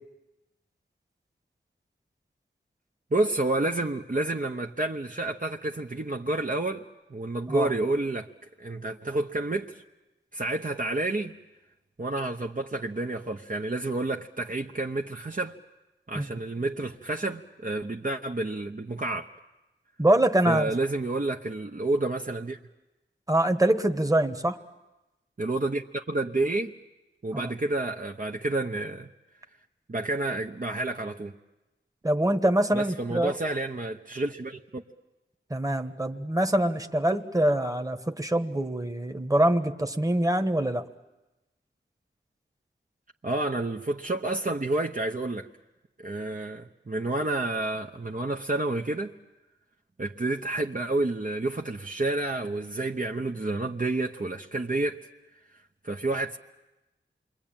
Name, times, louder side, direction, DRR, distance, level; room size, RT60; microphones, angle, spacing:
voice 1, 3.1-6.8 7.1-8.3 8.6-9.8 10.3-11.3 12.0-15.5 16.1-19.3 20.5-22.6 25.4-26.7 27.2-29.1 29.9-31.3 32.7-34.8 43.2-45.5 46.0-49.1 50.0-55.0 55.8-56.4, right 2 dB, 40° right, 1 dB, 1.0 m, -29 dB
voice 2, 20.0-20.7 23.3-24.6 27.3-27.5 32.0-33.3 35.5-40.9, right 1 dB, 15° right, 7 dB, 1.4 m, -24 dB
28.0 x 22.5 x 9.0 m, 1.0 s
wide cardioid pair, 55°, 20 cm